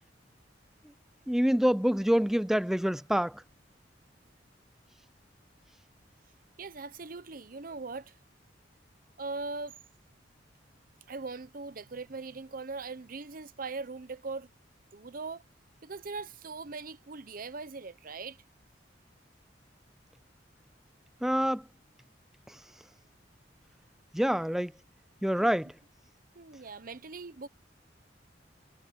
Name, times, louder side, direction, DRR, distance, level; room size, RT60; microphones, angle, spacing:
voice 1, 1.3-3.4 21.2-21.6 22.5-22.6 24.1-24.7 25.2-25.7, equal, ahead, 0.3 m, -26 dB
voice 2, 6.6-8.1 9.2-9.8 11.1-14.5 14.9-15.4 15.8-18.4 25.4-25.5 26.3-27.5, right 3 dB, 50° right, 0.8 m, -40 dB
head